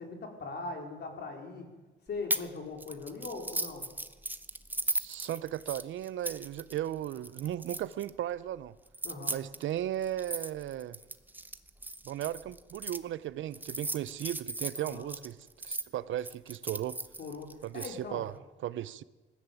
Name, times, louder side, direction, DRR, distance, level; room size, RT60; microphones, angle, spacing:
voice 1, 0.0-1.7 2.1-3.9 9.0-9.4 14.8-15.2 17.2-18.3, left 3 dB, 55° left, 4.5 m, -40 dB
sound 1, 2.3-2.5 2.8-8.1 8.9-13.0 13.5-15.8 16.2-17.9, right 1 dB, 10° right, 1.0 m, -37 dB
voice 2, 4.9-8.7 9.3-11.0 12.0-15.4 15.6-17.0 17.6-18.3 18.6-19.0, right 12 dB, 75° right, 0.8 m, -36 dB
19.5 x 14.5 x 9.3 m
cardioid pair, 90°, 20 cm